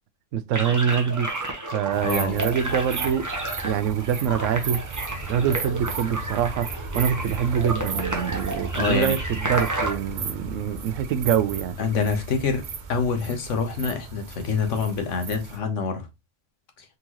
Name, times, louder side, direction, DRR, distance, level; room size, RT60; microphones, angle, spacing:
voice 1, 0.3-1.3 1.7-3.3 3.6-4.8 5.3-6.7 6.9-11.8, right 8 dB, 85° right, 0.9 m, -25 dB
sound 1, 0.5-9.9, right 2 dB, 15° right, 0.9 m, -31 dB
sound 2, 1.9-15.6, right 4 dB, 50° right, 0.6 m, -35 dB
voice 2, 2.0-2.4 8.7-9.1 11.8-12.6 12.9-16.0, left 5 dB, 75° left, 1.2 m, -26 dB
3.9 x 3.7 x 2.9 m
omnidirectional pair, 1.3 m